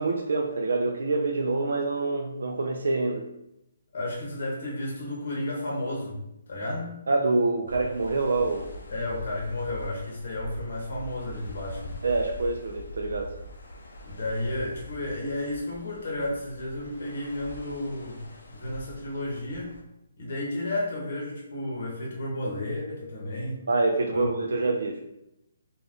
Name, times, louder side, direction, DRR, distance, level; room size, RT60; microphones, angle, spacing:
voice 1, 0.0-3.3 7.1-8.7 12.0-13.3 23.7-25.0, right 3 dB, 80° right, 2 dB, 0.3 m, -26 dB
voice 2, 3.9-6.2 6.5-7.0 8.9-12.0 14.0-18.3 18.5-19.7 20.2-23.6 24.1-24.3, left 1 dB, 45° left, -3 dB, 0.8 m, -32 dB
sound 1, 7.7-19.8, equal, 80° left, 0.5 m, -43 dB
2.4 x 2.2 x 3.4 m, 0.86 s
hypercardioid pair, 180°, 0 cm